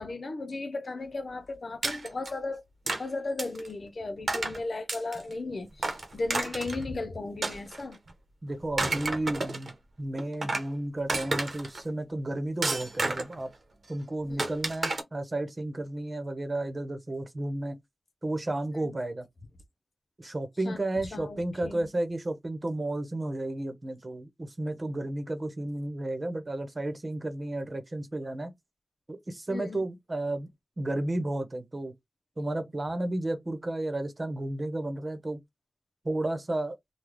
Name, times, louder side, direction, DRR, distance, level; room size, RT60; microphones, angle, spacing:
voice 1, 0.0-8.0 14.3-14.5 18.7-19.0 20.6-20.8 21.1-21.9 29.5-29.8, left 2 dB, 70° left, 0.6 m, -36 dB
sound 1, 1.8-2.3 2.9-3.0 3.4-3.7 4.3-4.6 4.9-5.3 5.8-6.8 7.4-8.1 8.6-9.7 10.2-10.7 11.1-11.8 12.6-13.4 14.4-15.0, right 3 dB, 75° right, 0.9 m, -31 dB
voice 2, 8.4-13.5 13.9-17.8 18.2-19.2 20.2-28.5 29.1-30.5 30.8-31.9 32.4-35.4 36.0-36.8, right 1 dB, 40° right, 1.0 m, -32 dB
3.6 x 2.3 x 3.1 m
wide cardioid pair, 85°, 0 cm